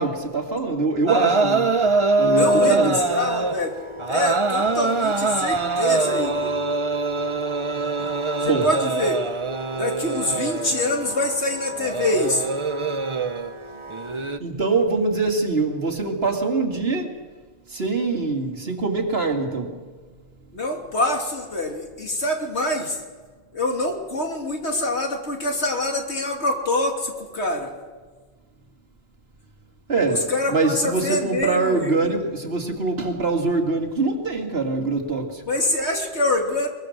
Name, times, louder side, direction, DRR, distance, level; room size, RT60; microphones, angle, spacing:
voice 1, 0.0-1.7 2.2-2.9 8.4-8.7 14.4-17.1 17.7-19.8 29.9-35.4, right 3 dB, 60° right, 3 dB, 2.6 m, -24 dB
sound 1, 1.1-14.4, right 3 dB, 30° right, 0.8 m, -24 dB
voice 2, 2.2-3.7 4.1-6.5 8.4-9.2 9.7-12.5 20.5-23.0 23.5-27.7 30.1-32.2 35.5-36.7, left 1 dB, 75° left, 2 dB, 3.2 m, -25 dB
23.0 x 22.0 x 6.5 m, 1.4 s
omnidirectional pair, 1.2 m